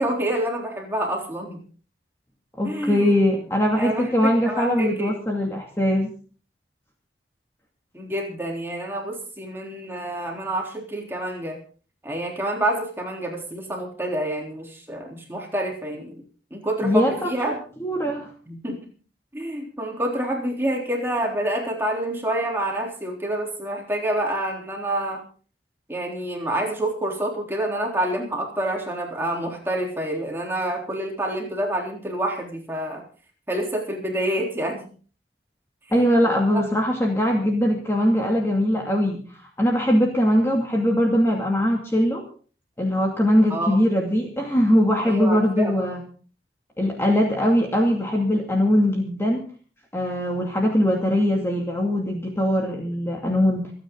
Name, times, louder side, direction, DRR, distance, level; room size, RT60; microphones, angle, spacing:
voice 1, 0.0-1.6 2.6-3.1 3.8-4.1 4.4-5.1 7.9-11.6 12.0-16.2 16.5-17.5 18.5-18.9 19.3-25.2 25.9-33.0 33.5-34.9 36.5-36.6 43.5-43.9 45.0-45.7 50.4-50.5, right 1 dB, 15° right, 0 dB, 3.6 m, -27 dB
voice 2, 2.6-6.1 16.8-18.3 35.9-39.2 39.6-42.2 42.8-46.0 46.8-49.4 49.9-53.7, equal, 15° left, 0 dB, 2.4 m, -21 dB
27.0 x 9.5 x 3.9 m, 0.41 s
head